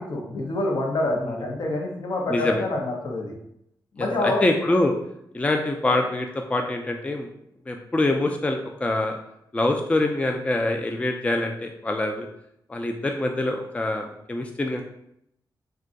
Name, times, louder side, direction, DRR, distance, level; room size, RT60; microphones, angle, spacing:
voice 1, 0.0-3.3 3.9-4.4, left 2 dB, 65° left, 0 dB, 0.7 m, -27 dB
voice 2, 2.3-2.6 4.0-4.9 5.3-7.3 7.7-9.2 9.5-12.3 12.7-14.8, left 2 dB, 15° left, 3 dB, 0.3 m, -25 dB
2.5 x 2.3 x 3.8 m, 0.77 s
cardioid pair, 70°, 7 cm